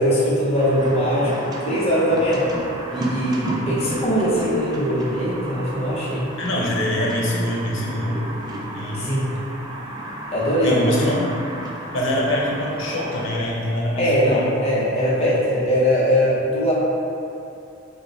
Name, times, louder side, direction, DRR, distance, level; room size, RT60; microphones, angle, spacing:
voice 1, 0.0-1.3 1.6-2.5 2.9-6.3 8.9-9.3 10.3-10.8 14.0-16.7, equal, 30° left, -7 dB, 0.8 m, -21 dB
sound 1, 0.5-13.3, right 1 dB, 20° right, 0.3 m, -33 dB
voice 2, 6.4-8.3 8.7-9.3 10.6-11.2 11.9-14.6, left 1 dB, 80° left, -3 dB, 0.8 m, -24 dB
4.5 x 2.2 x 3.9 m, 2.6 s
head